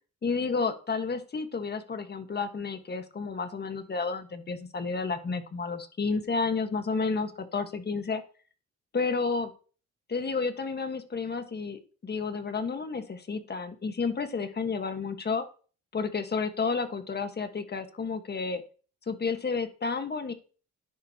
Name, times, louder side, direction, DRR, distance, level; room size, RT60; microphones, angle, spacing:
voice 1, 0.2-8.2 8.9-9.5 10.1-15.5 15.9-18.6 19.1-20.3, left 4 dB, 35° left, 8 dB, 1.5 m, -31 dB
13.0 x 10.0 x 2.9 m, 0.39 s
cardioid pair, 90°, 30 cm